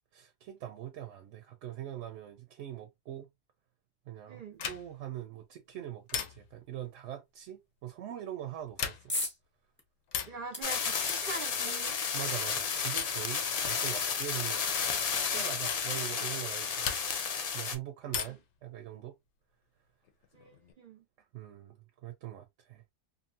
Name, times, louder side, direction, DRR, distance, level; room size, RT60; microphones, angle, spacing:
voice 1, 0.1-3.3 4.1-9.1 12.1-14.6 15.1-16.9 17.2-19.1 21.3-22.8, right 12 dB, 90° right, 0.9 m, -42 dB
voice 2, 4.3-4.6 10.3-12.0 18.3-18.4 20.3-21.0, right 3 dB, 55° right, 0.7 m, -43 dB
door wood metal latch grab unlock single and release, 4.6-5.1 6.1-6.7 8.6-9.3 10.1-10.5 11.7-12.1 13.0-13.3 14.6-14.8 15.7-15.9 16.8-17.4 18.1-18.6 20.0-20.7, left 7 dB, 85° left, 0.9 m, -38 dB
sound 1, 9.1-9.4 9.8-9.9 10.5-12.2 13.1-13.2 13.4-13.5, left 1 dB, 10° left, 0.6 m, -38 dB
sound 2, 10.6-17.8, left 6 dB, 55° left, 0.4 m, -32 dB
2.6 x 2.6 x 2.5 m
omnidirectional pair, 1.2 m